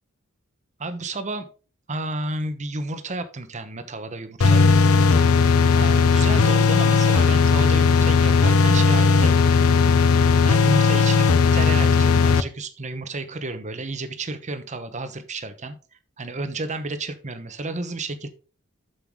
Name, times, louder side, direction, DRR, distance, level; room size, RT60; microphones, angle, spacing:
voice 1, 0.8-1.5 1.9-4.6 5.8-9.7 10.4-11.3 11.5-15.8 16.2-18.3, right 2 dB, 35° right, 9 dB, 1.0 m, -31 dB
sound 1, 4.4-12.4, left 5 dB, 85° left, 0.6 m, -17 dB
7.2 x 6.8 x 3.7 m, 0.35 s
head